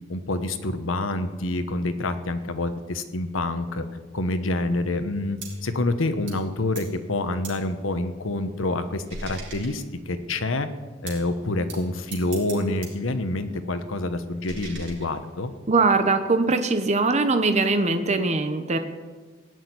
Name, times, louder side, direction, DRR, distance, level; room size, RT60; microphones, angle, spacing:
voice 1, 0.1-3.8 4.1-10.7 11.0-15.5, left 2 dB, 90° left, 9 dB, 1.1 m, -27 dB
sound 1, 5.4-5.7 6.3-6.5 6.7-7.0 7.4-7.7 8.1-10.2 11.1-11.3 11.7-13.0 13.3-15.6, right 3 dB, 65° right, 4.0 m, -42 dB
voice 2, 15.7-18.8, right 3 dB, 35° right, 7 dB, 0.9 m, -21 dB
18.0 x 6.4 x 9.6 m, 1.4 s
head